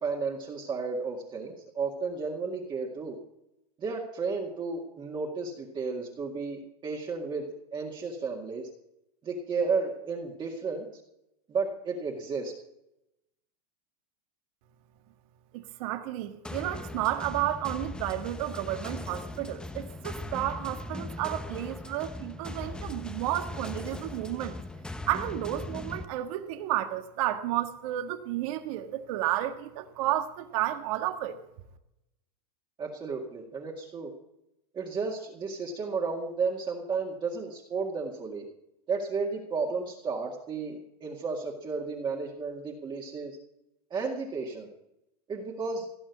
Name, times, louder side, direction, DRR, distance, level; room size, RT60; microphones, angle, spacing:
voice 1, 0.0-3.2 3.8-7.5 7.7-8.7 9.2-10.9 11.5-12.5 32.8-34.1 34.7-38.4 38.9-43.4 43.9-44.7 45.3-45.9, right 4 dB, 25° right, -1 dB, 2.0 m, -33 dB
voice 2, 15.5-24.5 25.1-31.3, right 13 dB, 60° right, 7 dB, 1.6 m, -32 dB
sound 1, 16.4-26.0, left 2 dB, 5° left, 0.8 m, -39 dB
17.0 x 6.3 x 9.5 m, 0.85 s
supercardioid pair, 140°, 20 cm